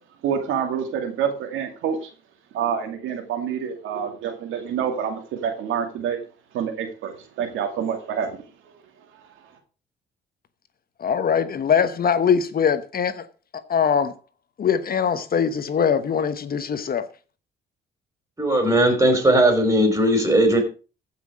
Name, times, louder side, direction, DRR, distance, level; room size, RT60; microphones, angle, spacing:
voice 1, 0.2-2.1 2.5-6.2 6.5-8.8, right 7 dB, 90° right, 2.5 m, -27 dB
voice 2, 11.0-13.3 13.7-14.1 14.6-17.1, left 7 dB, 50° left, 1.1 m, -22 dB
voice 3, 18.4-20.6, right 1 dB, 15° right, 5.0 m, -18 dB
15.0 x 6.0 x 4.9 m
cardioid pair, 90°, 20 cm